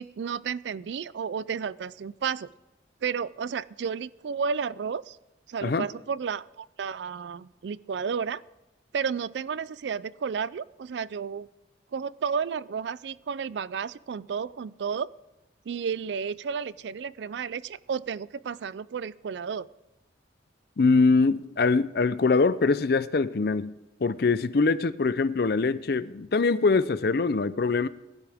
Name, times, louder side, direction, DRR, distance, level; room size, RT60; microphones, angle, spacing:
voice 1, 0.0-2.5 3.0-5.2 5.5-8.4 8.9-11.5 11.9-15.1 15.7-19.7, right 6 dB, 75° right, 0.4 m, -32 dB
voice 2, 20.8-23.7 24.0-27.9, left 4 dB, 60° left, 0.5 m, -23 dB
18.5 x 12.0 x 3.5 m
head